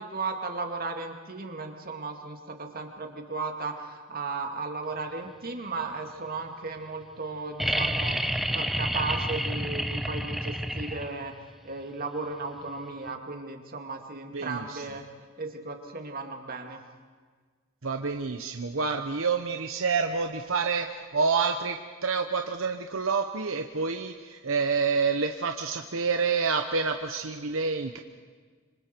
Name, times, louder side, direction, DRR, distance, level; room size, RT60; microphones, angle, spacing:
voice 1, 0.0-15.0 15.4-16.8, right 3 dB, 45° right, 4 dB, 2.3 m, -35 dB
sound 1, 7.6-11.4 13.1-13.2, equal, ahead, 0.7 m, -29 dB
voice 2, 14.3-14.8 17.8-28.0, right 5 dB, 70° right, 5 dB, 1.0 m, -28 dB
27.0 x 25.5 x 4.6 m, 1.5 s
head